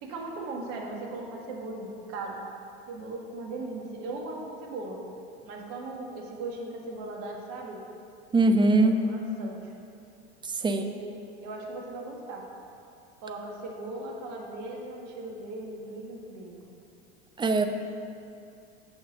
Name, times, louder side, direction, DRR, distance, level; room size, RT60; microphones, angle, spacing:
voice 1, 0.0-2.5 2.9-5.0 5.4-7.8 8.8-9.7 10.6-12.5 13.2-16.8, right 2 dB, 55° right, 0 dB, 1.8 m, -38 dB
voice 2, 8.3-9.0 10.4-10.8 17.4-17.7, right 2 dB, 15° right, 7 dB, 0.5 m, -22 dB
6.9 x 6.2 x 6.4 m, 2.7 s
hypercardioid pair, 95°, 34 cm